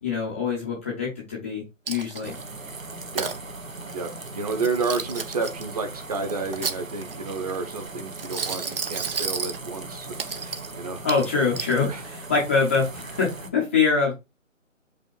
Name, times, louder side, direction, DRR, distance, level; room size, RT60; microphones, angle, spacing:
voice 1, 0.0-2.3 11.0-14.1, left 5 dB, 10° left, -4 dB, 0.8 m, -24 dB
Coin (dropping), 1.9-2.4 2.9-3.4 4.5-5.6 6.3-7.2 8.2-9.6 10.2-10.7 11.1-11.7, right 5 dB, 45° right, 0.8 m, -31 dB
sound 1, 2.2-13.5, right 3 dB, 85° right, 1.6 m, -39 dB
voice 2, 3.9-10.1 10.4-11.0 11.8-12.0, right 4 dB, 30° right, 6 dB, 1.1 m, -30 dB
5.4 x 4.8 x 4.6 m, 0.24 s
figure-of-eight pair, 150°, 39 cm